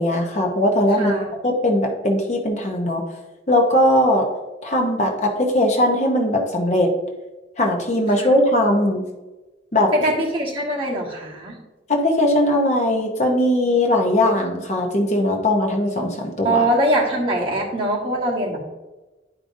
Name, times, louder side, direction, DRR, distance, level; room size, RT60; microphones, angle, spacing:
voice 1, 0.0-1.1 1.4-3.0 3.5-4.3 4.6-6.9 7.6-9.0 9.7-9.9 11.9-16.6, left 1 dB, 40° left, 2 dB, 0.8 m, -19 dB
voice 2, 0.9-1.3 8.2-8.3 9.9-11.5 16.4-18.6, right 1 dB, 30° right, -4 dB, 1.4 m, -22 dB
10.5 x 5.0 x 2.6 m, 1.1 s
head